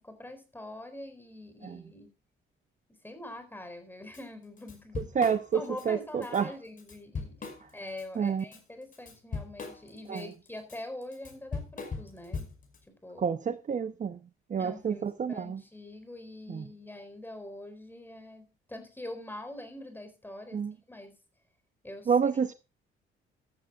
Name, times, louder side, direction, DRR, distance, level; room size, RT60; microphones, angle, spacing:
voice 1, 0.0-2.1 3.0-12.5 12.9-13.3 14.6-21.2 21.8-22.1, left 1 dB, 10° left, 4.4 m, -44 dB
Drum kit / Drum, 4.1-4.2 4.6-5.9 6.2-6.4 6.8-8.0 8.4-12.8, left 4 dB, 40° left, 5.6 m, -39 dB
voice 2, 5.0-6.5 8.2-8.4 10.1-10.3 13.2-14.2 14.5-15.6 16.5-16.6 20.5-20.7 22.1-22.5, right 7 dB, 35° right, 0.8 m, -29 dB
15.0 x 14.0 x 2.4 m
cardioid pair, 110°, 21 cm